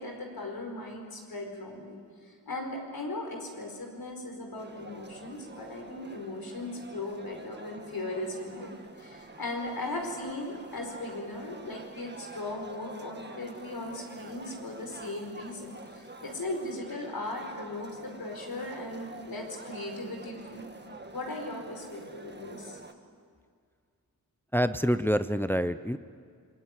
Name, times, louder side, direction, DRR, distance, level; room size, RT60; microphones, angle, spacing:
voice 1, 0.0-20.7 21.1-22.8, left 2 dB, 70° left, 2 dB, 4.8 m, -38 dB
sound 1, 4.6-22.9, right 2 dB, 30° right, 1.8 m, -47 dB
voice 2, 24.5-26.0, equal, 5° left, 11 dB, 0.6 m, -26 dB
26.0 x 22.0 x 9.8 m, 2.1 s
wide cardioid pair, 120°, 37 cm